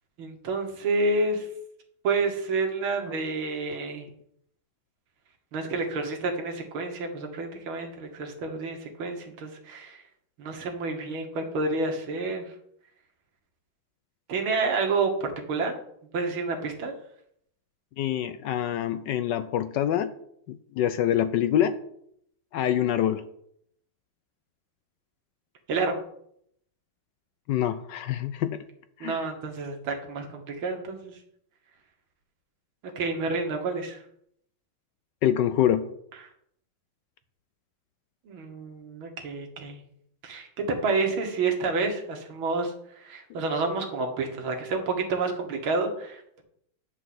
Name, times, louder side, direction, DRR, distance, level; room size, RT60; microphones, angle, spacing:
voice 1, 0.2-1.5 2.0-4.1 5.5-10.0 10.4-12.5 14.3-15.7 16.1-16.9 25.7-26.0 29.0-31.1 33.0-34.0 38.3-39.8 40.2-46.4, right 3 dB, 75° right, 2 dB, 2.2 m, -29 dB
voice 2, 18.0-20.1 20.5-21.8 22.5-23.2 27.5-28.6 29.0-29.2 35.2-35.9, left 10 dB, 75° left, 12 dB, 1.1 m, -25 dB
9.9 x 4.8 x 7.8 m, 0.70 s
omnidirectional pair, 2.3 m